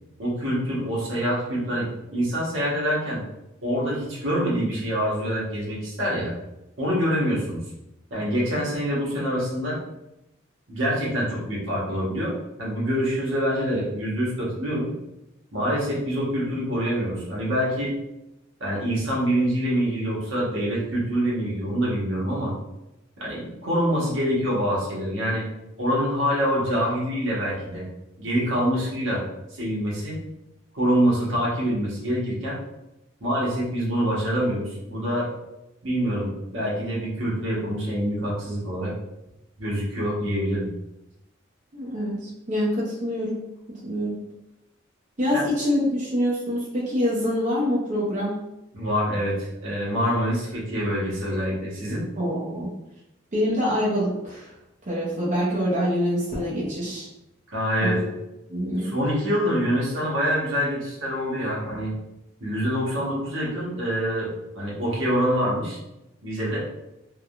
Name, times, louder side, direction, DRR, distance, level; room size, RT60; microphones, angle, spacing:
voice 1, 0.2-3.2 3.6-6.3 6.8-7.6 8.1-9.8 10.7-12.3 12.6-14.9 15.5-17.9 18.6-22.5 23.2-25.5 25.8-27.8 28.2-29.2 29.5-30.2 30.7-32.6 33.2-35.3 35.8-38.9 39.6-40.7 45.3-45.4 48.7-52.0 57.5-58.0 58.8-62.0 62.4-64.3 64.5-65.8 66.2-66.6, equal, 70° right, -5 dB, 1.0 m, -25 dB
voice 2, 41.7-43.4 43.8-44.2 45.2-48.4 52.2-52.7 53.3-54.5 54.9-57.1 57.8-58.1 58.5-58.9, equal, 35° right, -7 dB, 0.6 m, -25 dB
3.4 x 2.1 x 2.3 m, 0.90 s
head